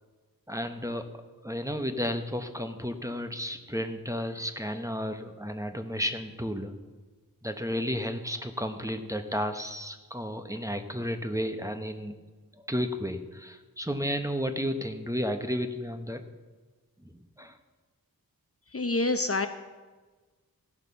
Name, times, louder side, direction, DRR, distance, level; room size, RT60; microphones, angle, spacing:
voice 1, 0.5-1.0 1.4-6.7 7.4-12.1 12.6-16.2 17.4-17.6, equal, 10° right, 7 dB, 1.0 m, -32 dB
voice 2, 18.7-19.5, left 2 dB, 40° left, 8 dB, 0.8 m, -26 dB
16.0 x 5.8 x 6.9 m, 1.3 s
wide cardioid pair, 50°, 36 cm